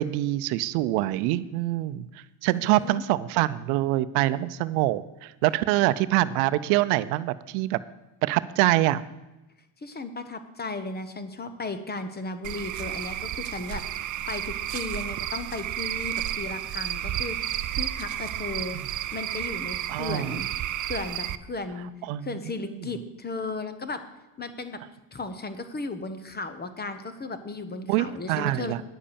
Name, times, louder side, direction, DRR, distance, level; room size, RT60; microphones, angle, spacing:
voice 1, 0.0-2.1 2.4-7.8 8.2-9.0 18.7-18.9 19.9-20.3 22.0-22.4 27.9-28.8, right 16 dB, 85° right, 16 dB, 0.7 m, -25 dB
voice 2, 2.5-3.0 9.8-20.5 20.8-21.9 22.2-24.0 24.4-24.8 25.1-28.8, left 3 dB, 20° left, 10 dB, 1.0 m, -35 dB
Cricket / Frog, 12.4-21.4, right 12 dB, 40° right, 0.6 m, -32 dB
9.9 x 7.5 x 6.9 m, 1.0 s
cardioid pair, 110°, 49 cm